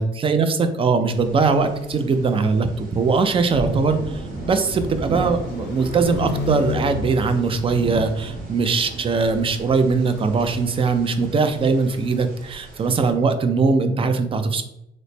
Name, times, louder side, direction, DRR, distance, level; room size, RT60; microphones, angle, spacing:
voice 1, 0.0-14.6, right 4 dB, 30° right, 8 dB, 0.4 m, -21 dB
sound 1, 1.1-13.1, right 2 dB, 45° right, 0.9 m, -35 dB
sound 2, 3.0-8.5, left 5 dB, 70° left, 0.5 m, -33 dB
3.1 x 2.1 x 4.1 m, 0.81 s
cardioid pair, 120°, 19 cm